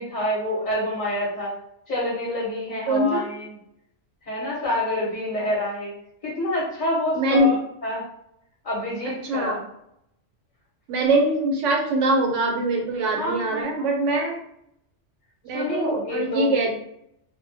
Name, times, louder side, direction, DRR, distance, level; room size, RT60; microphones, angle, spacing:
voice 1, 0.0-1.5 1.9-3.5 4.3-5.9 6.2-7.6 7.8-8.0 8.6-9.6 13.2-13.9 15.5-16.6, left 1 dB, 40° left, -6 dB, 0.8 m, -27 dB
voice 2, 2.9-3.3 7.2-7.5 9.2-9.6 10.9-14.4 15.4-16.7, right 2 dB, 80° right, 1 dB, 1.0 m, -22 dB
2.2 x 2.1 x 2.6 m, 0.76 s
omnidirectional pair, 1.2 m